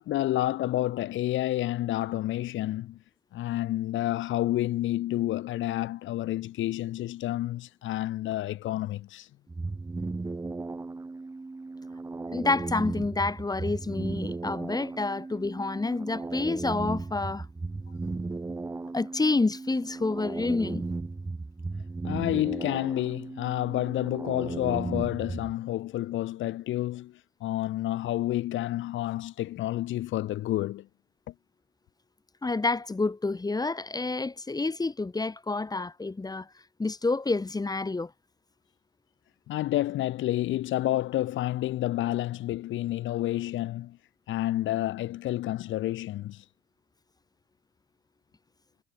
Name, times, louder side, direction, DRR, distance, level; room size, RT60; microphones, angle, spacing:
voice 1, 0.0-3.0 3.3-9.3 22.0-30.9 39.5-44.0 44.3-46.4, left 14 dB, 75° left, 0.7 m, -29 dB
sound 1, 9.5-25.5, right 3 dB, 15° right, 0.6 m, -36 dB
voice 2, 12.3-17.5 18.9-20.8 32.4-36.5 36.8-38.1, left 3 dB, 20° left, 1.2 m, -28 dB
cardioid pair, 90°, 20 cm